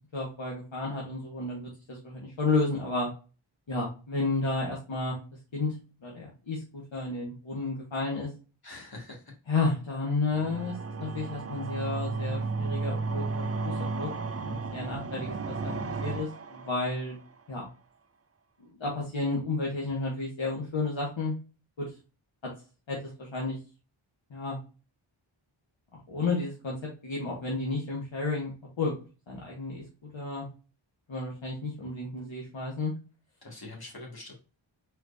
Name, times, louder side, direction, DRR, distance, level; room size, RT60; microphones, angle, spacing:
voice 1, 0.1-3.1 3.7-5.2 5.5-5.7 6.0-8.3 9.5-14.1 14.4-17.2 17.5-17.7 18.6-21.3 21.8-21.9 22.4-22.5 22.9-23.6 24.3-24.6 26.1-26.8 27.0-28.5 28.8-28.9 29.3-29.8 30.1-30.5 31.1-32.9, left 3 dB, 65° left, -3 dB, 1.4 m, -32 dB
voice 2, 8.6-9.2 33.4-34.3, left 2 dB, 45° left, -1 dB, 2.2 m, -44 dB
sound 1, 10.3-17.3, right 3 dB, 30° right, 0.5 m, -33 dB
4.5 x 4.5 x 2.6 m, 0.34 s
wide cardioid pair, 90°, 49 cm